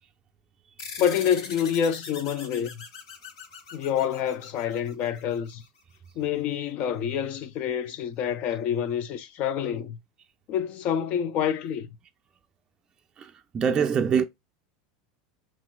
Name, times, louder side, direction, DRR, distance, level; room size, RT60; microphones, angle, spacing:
sound 1, 0.8-5.7, left 5 dB, 80° left, 2.5 m, -42 dB
voice 1, 1.0-2.8 3.7-5.6 6.2-10.0 10.5-11.9, left 9 dB, 50° left, 0.8 m, -27 dB
voice 2, 13.5-14.2, right 7 dB, 25° right, 0.5 m, -23 dB
5.8 x 3.2 x 2.3 m
supercardioid pair, 130°, 3 cm